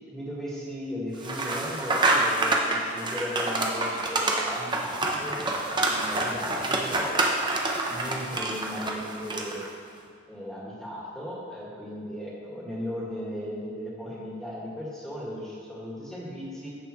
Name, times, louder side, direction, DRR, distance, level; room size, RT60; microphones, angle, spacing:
voice 1, 0.0-7.2 7.9-9.6 10.3-16.7, equal, ahead, -7 dB, 1.8 m, -36 dB
sound 1, 1.2-9.7, right 2 dB, 20° right, 0.6 m, -27 dB
14.5 x 5.3 x 3.1 m, 2.2 s
head